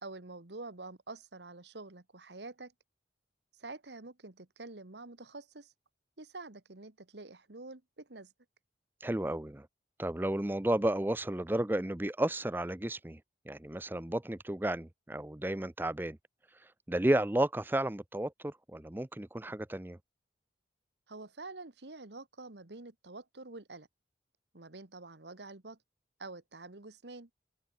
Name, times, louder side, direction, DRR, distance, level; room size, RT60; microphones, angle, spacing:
voice 1, 0.0-2.7 3.6-5.7 6.2-8.3 21.1-23.9 24.5-25.8 26.2-27.3, right 3 dB, 75° right, 1.7 m, -47 dB
voice 2, 9.0-9.7 10.0-13.2 13.5-16.2 16.9-20.0, right 1 dB, 10° right, 0.5 m, -32 dB
head